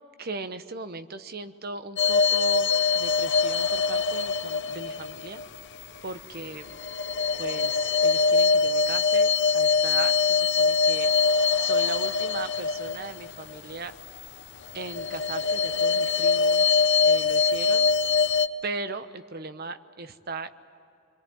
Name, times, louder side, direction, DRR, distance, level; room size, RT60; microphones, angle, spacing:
voice 1, 0.2-5.4 6.0-6.8 7.3-11.2 11.6-13.9 14.7-17.9 18.6-20.5, right 3 dB, 45° right, 10 dB, 1.0 m, -38 dB
sound 1, 2.0-5.8 6.3-14.3 14.7-18.5, left 4 dB, 55° left, 0.9 m, -23 dB
27.0 x 23.0 x 9.6 m, 2.7 s
head